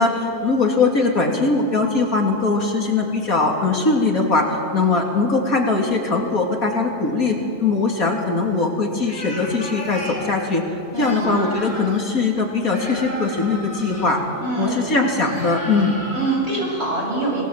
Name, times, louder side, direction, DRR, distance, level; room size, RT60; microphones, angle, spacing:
voice 1, 0.0-10.6 11.0-14.2 14.6-16.0, left 3 dB, 65° left, 0 dB, 3.4 m, -20 dB
sound 1, 9.0-10.3 10.9-12.0 12.7-14.1 15.2-16.4, equal, 30° left, 5.4 m, -34 dB
voice 2, 10.9-11.3 14.4-15.0 16.1-17.4, right 2 dB, 45° right, -2 dB, 6.8 m, -24 dB
26.0 x 19.5 x 7.5 m, 2.9 s
omnidirectional pair, 1.6 m